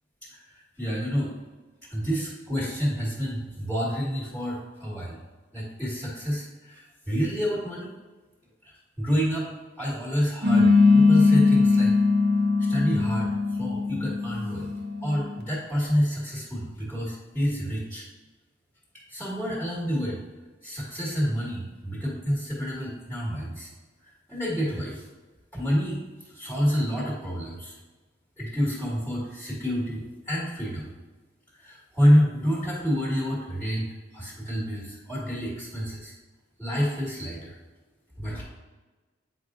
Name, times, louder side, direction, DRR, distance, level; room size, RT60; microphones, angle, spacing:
voice 1, 0.3-1.3 1.9-5.2 5.5-7.9 8.6-9.5 9.8-11.9 12.6-14.7 15.0-18.0 19.1-20.2 20.6-23.7 24.0-25.0 25.5-27.7 28.4-30.9 31.5-36.1 36.6-37.6 38.2-38.4, equal, 5° left, -7 dB, 1.5 m, -28 dB
sound 1, 10.4-15.4, left 3 dB, 55° right, 0.8 m, -20 dB
8.2 x 4.9 x 2.5 m, 1.3 s
head